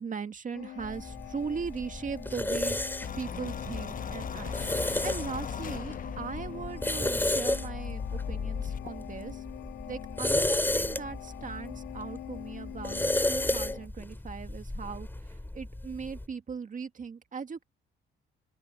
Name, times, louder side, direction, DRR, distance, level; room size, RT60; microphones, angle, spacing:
voice 1, 0.0-4.6 5.0-9.4 9.9-13.0 13.3-17.6, right 5 dB, 40° right, 1.9 m, -39 dB
sound 1, 0.5-13.9, left 14 dB, 90° left, 3.1 m, -45 dB
sound 2, 0.8-16.3, left 1 dB, 10° left, 3.7 m, -33 dB
sound 3, 3.0-8.9, left 7 dB, 45° left, 0.9 m, -38 dB
open air
cardioid pair, 90°, 20 cm